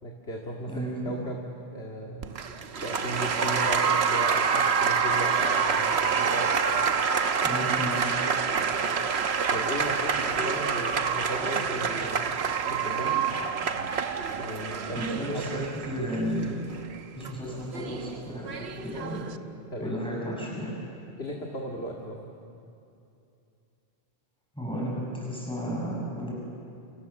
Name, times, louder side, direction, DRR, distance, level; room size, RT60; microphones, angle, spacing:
voice 1, 0.0-1.4 1.7-2.3 2.8-6.5 9.5-12.4 12.6-13.2 14.3-15.7 19.7-20.2 21.2-22.3, equal, 75° left, -1 dB, 2.5 m, -36 dB
voice 2, 0.7-1.2 7.4-8.1 15.0-16.7 17.2-19.2 19.8-20.7 24.6-26.3, equal, 5° left, -4 dB, 7.1 m, -33 dB
Applause, 2.2-19.4, right 6 dB, 85° right, 1.3 m, -27 dB
29.5 x 27.5 x 7.2 m, 2.7 s
omnidirectional pair, 1.1 m